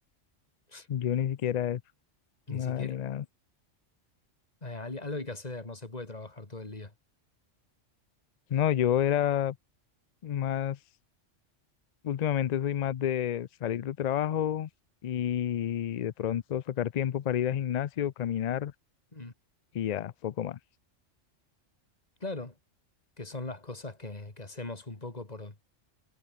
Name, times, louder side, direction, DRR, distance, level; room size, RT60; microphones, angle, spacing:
voice 1, 0.9-1.8 2.5-3.2 8.5-9.6 10.2-10.8 12.0-14.7 15.0-18.7 19.7-20.6, left 10 dB, 75° left, 0.3 m, -29 dB
voice 2, 2.5-3.0 4.6-6.9 19.1-19.3 22.2-22.5 23.2-25.5, left 2 dB, 30° left, 2.6 m, -39 dB
omnidirectional pair, 1.3 m